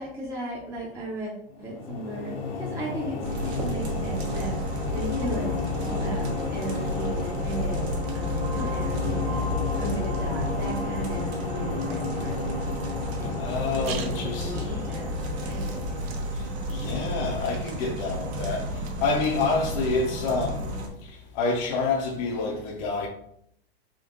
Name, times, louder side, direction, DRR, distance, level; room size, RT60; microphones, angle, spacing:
voice 1, 0.0-1.3 1.6-3.2 3.5-6.2 6.5-7.9 8.1-12.4 13.2-15.1 15.5-15.8, right 2 dB, 10° right, 0.6 m, -36 dB
sound 1, 1.5-16.8, left 4 dB, 65° left, 0.9 m, -33 dB
sound 2, 3.2-20.9, left 1 dB, 80° right, 1.2 m, -31 dB
voice 2, 13.4-14.7 16.3-23.1, left 3 dB, 40° left, 0.6 m, -28 dB
sound 3, 13.5-19.6, right 8 dB, 60° right, 0.7 m, -46 dB
3.7 x 2.8 x 3.7 m
supercardioid pair, 155°, 32 cm